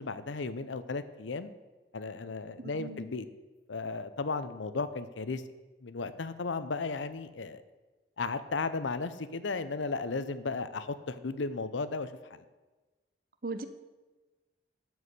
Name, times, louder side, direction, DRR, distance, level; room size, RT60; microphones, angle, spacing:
voice 1, 0.0-1.5 1.9-3.3 3.7-5.4 5.8-7.6 8.2-12.4, left 4 dB, 90° left, 12 dB, 0.7 m, -35 dB
voice 2, 2.6-3.0 13.4-13.7, right 3 dB, 50° right, 10 dB, 0.8 m, -38 dB
12.5 x 4.8 x 8.1 m, 1.2 s
head